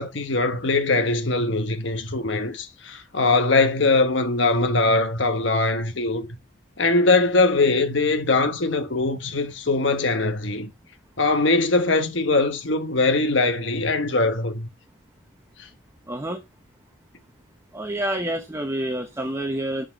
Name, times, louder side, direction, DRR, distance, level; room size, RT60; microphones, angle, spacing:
voice 1, 0.0-6.3 6.8-10.7 11.2-14.7 15.6-15.7, left 3 dB, 60° left, 1.2 m, -21 dB
voice 2, 16.1-16.4 17.7-19.8, right 1 dB, 15° right, 0.8 m, -28 dB
6.9 x 6.1 x 7.5 m
head